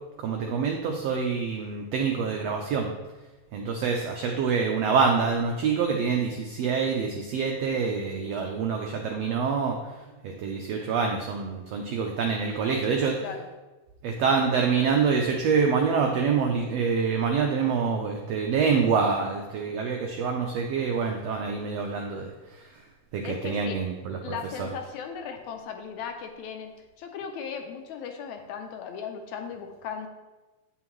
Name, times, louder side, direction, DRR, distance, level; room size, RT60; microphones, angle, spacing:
voice 1, 0.2-2.9 3.5-13.1 14.0-22.8 23.1-24.7, right 5 dB, 85° right, 3 dB, 1.4 m, -26 dB
voice 2, 23.2-23.8 24.2-30.1, left 7 dB, 75° left, 5 dB, 1.9 m, -37 dB
8.5 x 7.4 x 3.1 m, 1.2 s
omnidirectional pair, 3.6 m